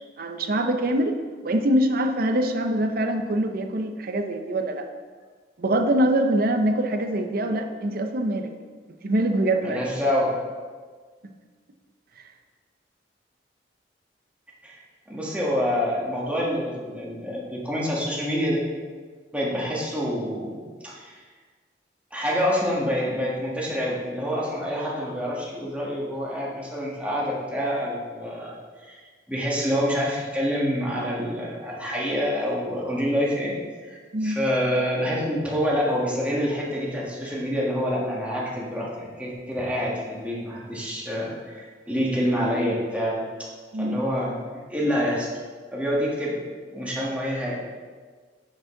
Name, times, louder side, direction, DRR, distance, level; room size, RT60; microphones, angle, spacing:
voice 1, 0.2-1.2 1.4-4.9 5.6-8.5 9.0-9.9 11.2-11.3 34.1-34.4 43.7-44.0, right 1 dB, 55° right, 6 dB, 0.7 m, -24 dB
voice 2, 9.6-10.3 14.6-14.8 15.1-18.6 19.3-21.1 22.1-29.0 29.3-33.5 33.9-43.5 43.8-45.3 45.7-46.3 46.7-47.6, equal, 10° right, -5 dB, 1.7 m, -27 dB
10.5 x 5.2 x 3.8 m, 1.5 s
head